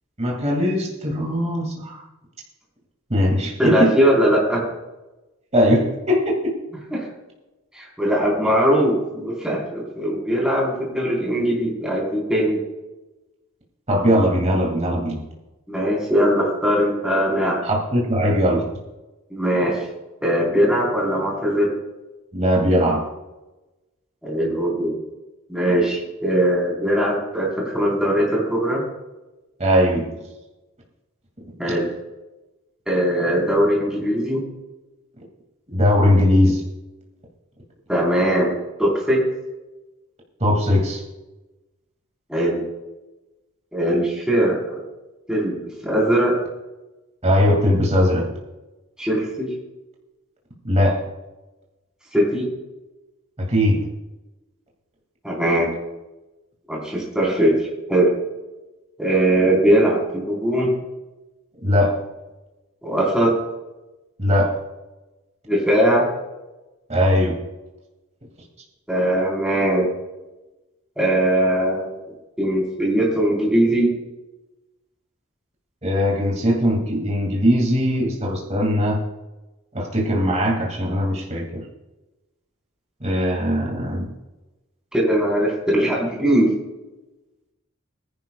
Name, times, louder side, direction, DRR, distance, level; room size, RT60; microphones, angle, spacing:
voice 1, 0.2-2.0 3.1-3.9 5.5-6.5 13.9-15.2 17.6-18.7 22.3-23.0 29.6-30.1 35.7-36.6 40.4-41.0 47.2-48.3 50.6-51.0 53.4-53.8 61.6-62.0 64.2-64.6 66.9-67.4 75.8-79.0 79.7-81.6 83.0-84.1, equal, 35° right, -1 dB, 2.3 m, -20 dB
voice 2, 3.6-4.7 6.9-7.1 7.7-12.6 15.7-17.6 19.3-19.8 20.2-21.7 24.2-25.0 25.5-28.8 31.6-31.9 32.9-34.4 37.9-39.2 42.3-42.6 43.7-44.8 45.3-45.6 45.8-46.4 49.0-49.5 52.1-52.5 55.2-55.7 56.7-58.1 59.0-60.7 62.8-63.3 65.5-66.1 68.9-69.9 71.0-72.0 72.4-73.9 84.9-86.5, right 1 dB, 5° right, -3 dB, 4.0 m, -20 dB
21.5 x 11.0 x 2.3 m, 1.1 s
head